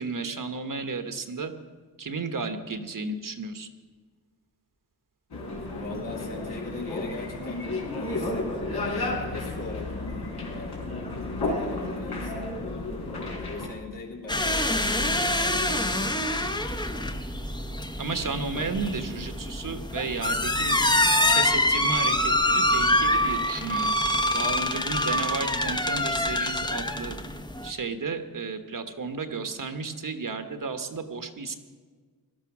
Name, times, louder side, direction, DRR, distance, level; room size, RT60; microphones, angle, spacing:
voice 1, 0.0-1.5 2.0-3.7 18.0-20.7 21.3-23.9 24.3-27.1 27.6-31.6, right 4 dB, 55° right, 8 dB, 1.3 m, -33 dB
sound 1, 5.3-13.7, left 2 dB, 75° left, 3.9 m, -32 dB
voice 2, 5.7-7.7 8.0-10.3 10.5-10.9 11.4-12.5 13.5-16.9, left 3 dB, 55° left, -3 dB, 3.5 m, -40 dB
sound 2, 14.3-27.7, left 1 dB, 10° left, 1.0 m, -25 dB
18.0 x 12.5 x 6.1 m, 1.5 s
wide cardioid pair, 90°, 39 cm